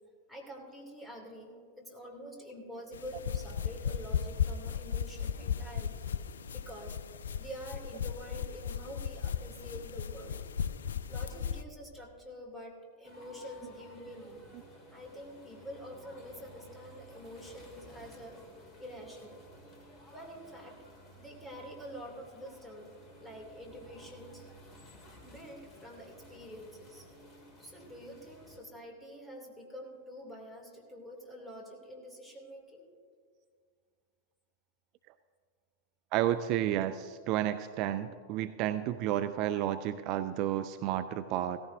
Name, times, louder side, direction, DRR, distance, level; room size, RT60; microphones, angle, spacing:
voice 1, 0.3-6.0 6.5-7.0 7.4-10.4 11.1-14.4 14.9-18.4 18.8-19.4 20.1-20.7 21.2-22.9 23.2-24.4 25.2-27.1 27.6-32.9, equal, 10° left, 0 dB, 2.6 m, -47 dB
sound 1, 2.9-11.6, left 8 dB, 65° left, 0.3 m, -36 dB
sound 2, 13.0-28.6, left 1 dB, 25° left, 2.5 m, -55 dB
voice 2, 36.1-41.6, right 12 dB, 40° right, 11 dB, 0.3 m, -31 dB
16.5 x 14.5 x 2.6 m, 2.1 s
figure-of-eight pair, 90°, 0 cm